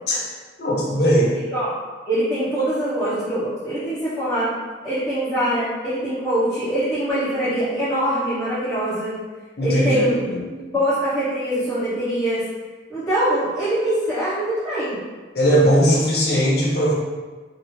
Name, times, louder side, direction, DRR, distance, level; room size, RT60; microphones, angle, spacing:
voice 1, 0.6-1.3 9.6-10.0 10.3-10.4 15.3-16.9, equal, 65° left, -5 dB, 0.8 m, -18 dB
voice 2, 2.1-4.5 4.8-9.1 9.6-10.2 10.7-12.4 12.9-15.0, right 1 dB, 15° left, -15 dB, 0.9 m, -23 dB
3.0 x 2.6 x 3.0 m, 1.3 s
head